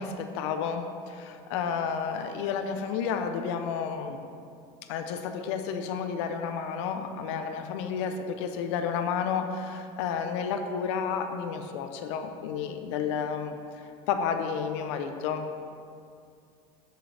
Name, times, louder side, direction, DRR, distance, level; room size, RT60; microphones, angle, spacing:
voice 1, 0.0-4.2 4.9-13.6 14.1-15.5, left 6 dB, 85° left, 7 dB, 0.8 m, -31 dB
10.5 x 6.7 x 3.4 m, 2.4 s
cardioid pair, 140°, 15 cm